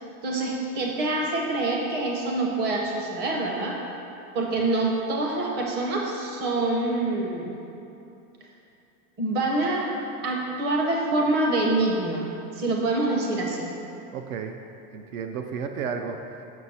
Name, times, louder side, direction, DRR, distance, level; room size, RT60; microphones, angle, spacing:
voice 1, 0.2-3.8 4.3-7.5 9.2-9.9 10.2-12.3 12.5-13.7, right 2 dB, 20° right, -1 dB, 0.7 m, -26 dB
voice 2, 14.1-14.6 14.9-16.4, right 6 dB, 65° right, 6 dB, 0.6 m, -33 dB
6.4 x 6.1 x 4.1 m, 2.8 s
supercardioid pair, 155°, 46 cm